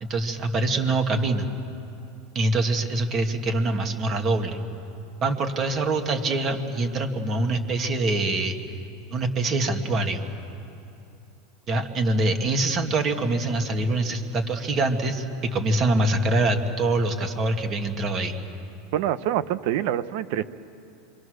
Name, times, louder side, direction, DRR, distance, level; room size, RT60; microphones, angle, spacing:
voice 1, 0.0-1.5 2.3-4.6 5.2-8.6 9.1-10.3 11.7-18.4, right 2 dB, 35° right, 5 dB, 2.1 m, -24 dB
voice 2, 18.9-20.4, right 11 dB, 65° right, 15 dB, 0.8 m, -25 dB
27.0 x 24.0 x 6.5 m, 2.7 s
supercardioid pair, 135°, 0 cm